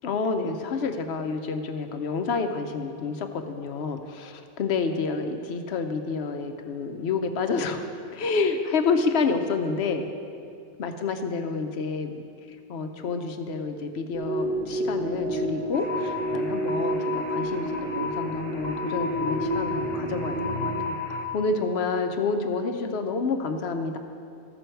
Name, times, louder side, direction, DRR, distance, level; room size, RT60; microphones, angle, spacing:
voice 1, 0.0-7.9 8.1-10.1 10.8-12.2 12.5-24.0, left 4 dB, 75° left, 6 dB, 1.0 m, -29 dB
sound 1, 14.1-20.9, right 1 dB, 70° right, 1.2 m, -30 dB
sound 2, 15.7-21.3, left 5 dB, 25° left, 1.0 m, -34 dB
14.0 x 6.1 x 4.5 m, 2.5 s
omnidirectional pair, 1.1 m